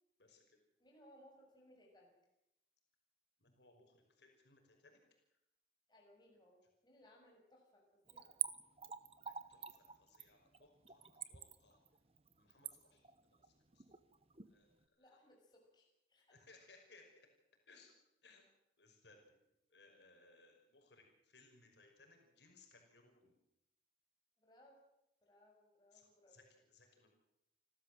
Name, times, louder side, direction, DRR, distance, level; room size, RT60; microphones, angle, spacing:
voice 1, 0.2-0.6 3.4-5.0 9.2-11.8 12.3-13.0 13.3-13.8 14.5-15.2 16.3-17.3 17.7-17.9 18.2-18.4 18.8-19.4 19.7-23.4 25.9-27.1, left 3 dB, 75° left, 2 dB, 5.6 m, -66 dB
voice 2, 0.8-2.1 5.9-8.4 15.0-16.3 19.7-19.8 24.4-24.8 25.2-26.4, equal, 25° left, -1 dB, 6.4 m, -66 dB
Splash splatter / Trickle dribble, 8.1-14.5 14.8-14.9, right 9 dB, 35° right, 1.1 m, -46 dB
29.5 x 13.5 x 7.8 m, 0.84 s
head